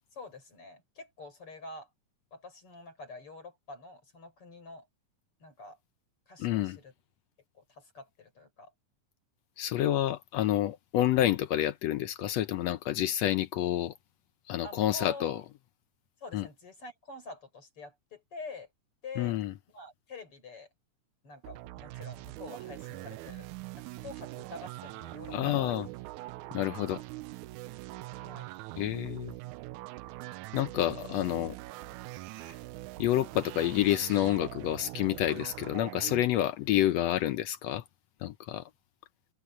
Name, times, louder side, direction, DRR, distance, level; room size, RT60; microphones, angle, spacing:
voice 1, 0.1-1.9 2.3-4.9 5.4-5.8 6.3-6.9 7.6-8.7 14.6-15.3 16.2-18.7 19.0-19.4 19.7-20.7 21.2-23.5 23.8-25.9 28.1-28.5, left 3 dB, 45° left, 7.0 m, -46 dB
voice 2, 6.4-6.8 9.6-13.9 14.5-15.4 16.3-16.5 19.2-19.5 25.3-25.9 26.5-27.0 28.8-29.3 30.5-31.5 32.5-32.6 33.0-37.8 38.2-38.6, left 12 dB, 75° left, 1.6 m, -28 dB
sound 1, 21.4-36.2, right 19 dB, 80° right, 1.9 m, -43 dB
omnidirectional pair, 3.6 m